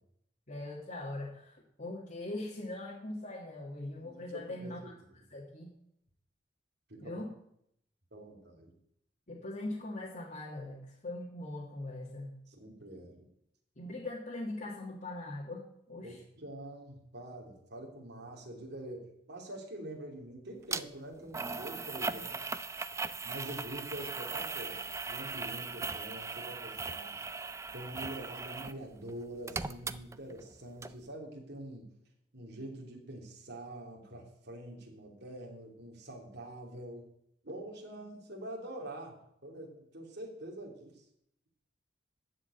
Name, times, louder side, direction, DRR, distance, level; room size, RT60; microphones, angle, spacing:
voice 1, 0.5-4.8 5.3-5.7 7.0-7.3 9.3-12.4 13.8-16.2 22.1-22.3, left 2 dB, 45° left, -3 dB, 1.7 m, -41 dB
voice 2, 4.0-5.2 6.9-7.2 8.1-8.7 12.5-13.3 16.0-22.4 23.2-27.2 27.7-31.9 32.3-37.1 37.4-41.0, right 1 dB, 60° right, 0 dB, 2.9 m, -45 dB
sound 1, 20.7-20.8 21.3-28.8 29.1-30.5 30.8-30.9, right 4 dB, 15° right, 0.4 m, -38 dB
13.5 x 4.9 x 8.9 m, 0.75 s
head